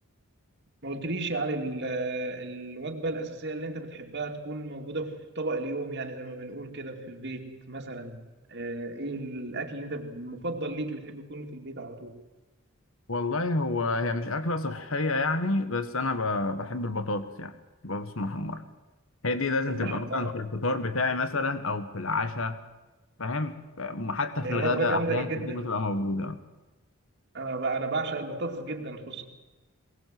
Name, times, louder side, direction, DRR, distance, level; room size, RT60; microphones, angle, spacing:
voice 1, 0.8-8.2 8.5-12.2 19.7-20.3 24.4-25.7 27.3-29.2, right 2 dB, 50° right, 3 dB, 2.6 m, -33 dB
voice 2, 13.1-17.5 17.8-18.6 19.2-22.6 23.2-26.4, left 3 dB, 65° left, 10 dB, 1.7 m, -29 dB
22.0 x 19.5 x 7.8 m, 1.2 s
head